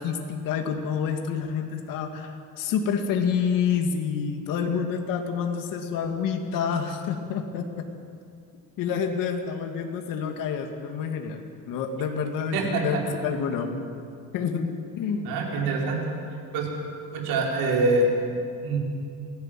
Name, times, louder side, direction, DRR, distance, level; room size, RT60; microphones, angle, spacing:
voice 1, 0.0-7.9 8.8-13.8 14.3-15.3, left 6 dB, 60° left, 4 dB, 2.3 m, -28 dB
voice 2, 12.5-13.0 15.2-16.0 16.5-16.7 17.1-18.8, right 2 dB, 75° right, -1 dB, 5.3 m, -25 dB
27.0 x 17.0 x 7.6 m, 2.4 s
cardioid pair, 160°, 36 cm